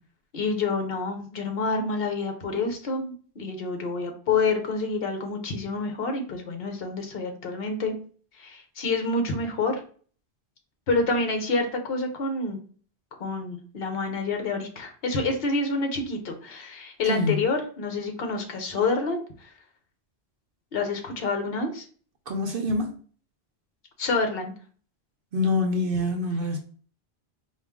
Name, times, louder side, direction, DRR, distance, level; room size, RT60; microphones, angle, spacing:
voice 1, 0.3-8.0 8.3-9.8 10.9-12.6 13.2-19.5 20.7-21.8 24.0-24.5, left 3 dB, 65° left, 1.1 m, -28 dB
voice 2, 22.3-22.9 25.3-26.6, left 2 dB, 60° right, 0.8 m, -25 dB
4.8 x 2.5 x 3.5 m
omnidirectional pair, 1.1 m